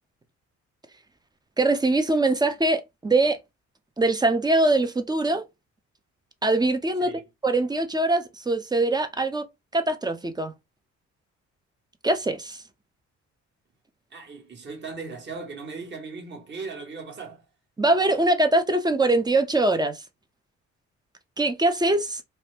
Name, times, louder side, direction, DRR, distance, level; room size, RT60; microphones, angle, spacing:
voice 1, 1.6-3.4 4.0-5.4 6.4-7.1 7.4-9.4 9.7-10.5 12.0-12.6 17.8-20.0 21.4-22.2, right 2 dB, 15° right, 0.5 m, -22 dB
voice 2, 14.1-17.5, right 4 dB, 35° right, 1.3 m, -38 dB
2.7 x 2.1 x 3.2 m
cardioid pair, 90°, 30 cm